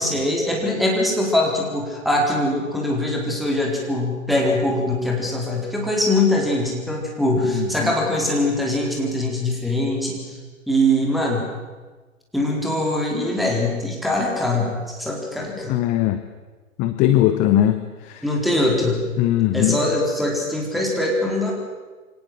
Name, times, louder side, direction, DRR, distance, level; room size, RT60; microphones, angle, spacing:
voice 1, 0.0-10.4 10.7-11.5 12.3-15.7 18.2-19.0 19.5-21.5, left 1 dB, ahead, -1 dB, 4.1 m, -22 dB
voice 2, 7.4-7.9 15.7-16.2 16.8-18.2 19.2-19.8, left 13 dB, 15° left, 10 dB, 0.8 m, -20 dB
24.0 x 18.0 x 7.7 m, 1.3 s
figure-of-eight pair, 120°, 41 cm